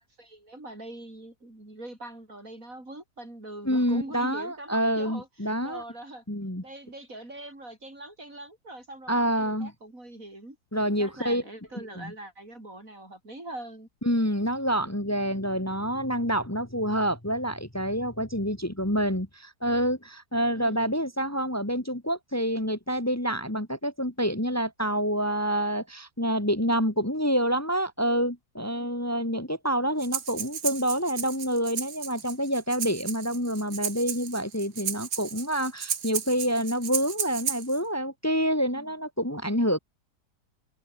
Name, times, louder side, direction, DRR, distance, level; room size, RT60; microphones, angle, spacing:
voice 1, 0.0-6.2 6.6-10.6 11.0-13.9 20.6-20.9 28.7-28.9 38.7-38.9, right 1 dB, 55° right, 8.2 m, -43 dB
voice 2, 3.7-5.8 6.3-6.6 9.1-9.7 10.7-11.4 11.8-12.1 14.0-39.8, equal, 10° left, 2.8 m, -27 dB
Breathing, 30.0-37.8, right 7 dB, 80° right, 2.1 m, -34 dB
open air
omnidirectional pair, 1.7 m